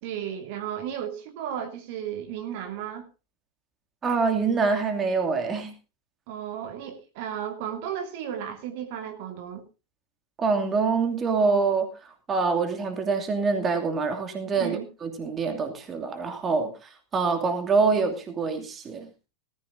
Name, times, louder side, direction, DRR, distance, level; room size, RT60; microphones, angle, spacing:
voice 1, 0.0-3.1 6.3-9.6 14.6-14.8, right 9 dB, 50° right, 2.5 m, -34 dB
voice 2, 4.0-5.7 10.4-19.1, right 4 dB, 20° right, 2.6 m, -25 dB
19.5 x 14.0 x 2.7 m
figure-of-eight pair, 90°, 0 cm